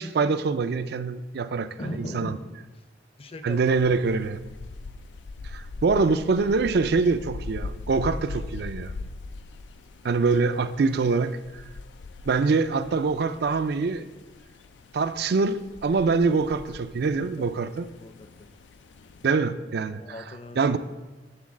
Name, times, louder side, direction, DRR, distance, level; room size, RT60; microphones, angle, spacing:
voice 1, 0.0-1.7 2.0-2.4 3.4-4.4 5.5-8.9 10.0-11.4 12.3-14.0 14.9-17.9 19.2-20.0 20.6-20.8, right 4 dB, 60° right, 12 dB, 0.4 m, -24 dB
voice 2, 1.8-2.5 3.2-3.8 17.2-17.5 17.8-18.5 20.0-20.8, left 1 dB, 35° left, 8 dB, 0.6 m, -39 dB
sound 1, 3.5-19.3, left 3 dB, 90° left, 0.4 m, -41 dB
8.6 x 4.0 x 7.1 m, 1.2 s
head